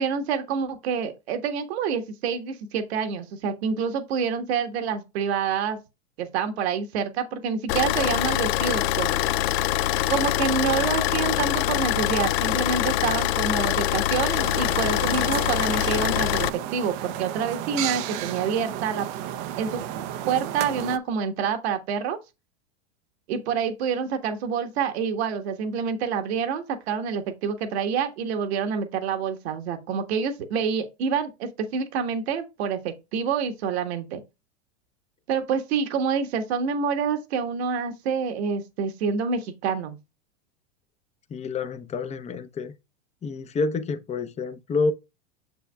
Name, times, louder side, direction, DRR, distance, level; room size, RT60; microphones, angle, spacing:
voice 1, 0.0-5.8 6.2-9.1 10.1-19.1 19.6-19.8 20.3-22.2 23.3-34.2 35.3-39.9, right 6 dB, 70° right, 1.6 m, -27 dB
Car / Idling, 7.7-16.5, left 13 dB, 65° left, 0.5 m, -24 dB
sound 1, 14.4-21.0, right 11 dB, 55° right, 0.8 m, -33 dB
voice 2, 41.3-42.7 43.2-44.9, left 3 dB, 20° left, 0.8 m, -28 dB
6.9 x 6.9 x 2.3 m
hypercardioid pair, 110°, 33 cm